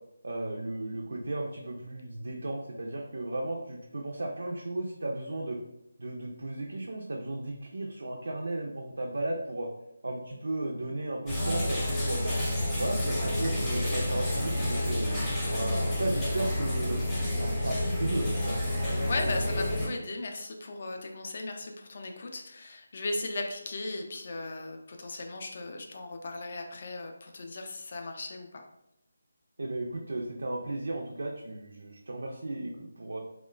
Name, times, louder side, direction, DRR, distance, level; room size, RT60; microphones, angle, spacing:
voice 1, 0.2-5.6 6.0-9.7 10.0-12.3 12.8-15.1 15.5-17.0 17.4-18.5 29.6-33.2, right 2 dB, 70° right, 0 dB, 0.3 m, -35 dB
sound 1, 11.3-19.9, left 1 dB, 10° left, 0.6 m, -29 dB
voice 2, 18.9-28.6, left 2 dB, 50° left, 3 dB, 0.4 m, -37 dB
2.9 x 2.1 x 2.3 m, 0.82 s
figure-of-eight pair, 160°, 0 cm